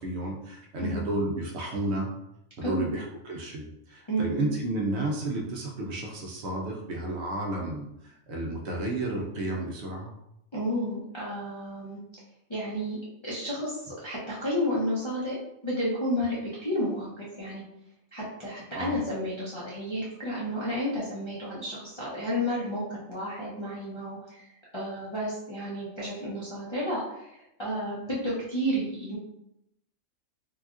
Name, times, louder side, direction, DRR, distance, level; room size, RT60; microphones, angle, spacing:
voice 1, 0.0-2.1 2.6-10.1 18.7-19.0, right 1 dB, 65° right, -1 dB, 0.8 m, -32 dB
voice 2, 0.8-1.2 2.6-2.9 4.1-4.4 10.5-12.0 12.5-13.0 13.2-15.4 15.6-17.6 18.1-24.4 24.7-29.2, equal, 35° left, -8 dB, 0.4 m, -31 dB
3.4 x 2.3 x 2.4 m, 0.83 s
omnidirectional pair, 1.3 m